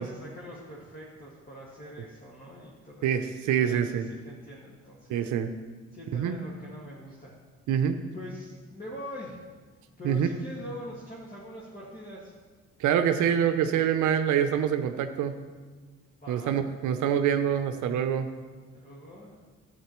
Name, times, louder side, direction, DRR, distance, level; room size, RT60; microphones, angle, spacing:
voice 1, 0.0-3.1 3.6-4.0 4.2-5.1 5.9-7.3 8.1-9.4 10.0-12.3 16.2-16.6 18.7-19.3, equal, 30° left, -6 dB, 1.9 m, -43 dB
voice 2, 3.0-4.1 5.1-5.5 6.1-6.4 7.7-8.0 10.0-10.3 12.8-15.4 16.3-18.3, right 9 dB, 80° right, 8 dB, 0.6 m, -25 dB
11.5 x 8.8 x 3.0 m, 1.4 s
cardioid pair, 90°, 30 cm